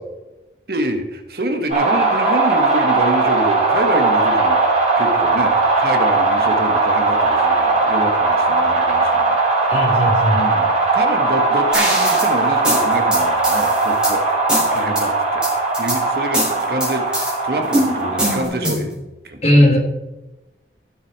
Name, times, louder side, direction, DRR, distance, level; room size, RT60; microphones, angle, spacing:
voice 1, 0.7-9.4 10.3-15.5 15.8-18.9 19.2-19.8, equal, 55° right, 5 dB, 1.6 m, -27 dB
sound 1, 1.7-18.4, right 3 dB, 40° right, 4.4 m, -18 dB
voice 2, 9.7-10.4 19.4-19.8, left 1 dB, 35° left, -1 dB, 3.3 m, -15 dB
sound 2, 11.7-12.3 12.6-14.1 14.5-15.0 15.4-16.0 16.3-17.3 17.7-18.9, right 1 dB, 5° right, 4.1 m, -22 dB
15.5 x 7.3 x 4.7 m, 1.0 s
head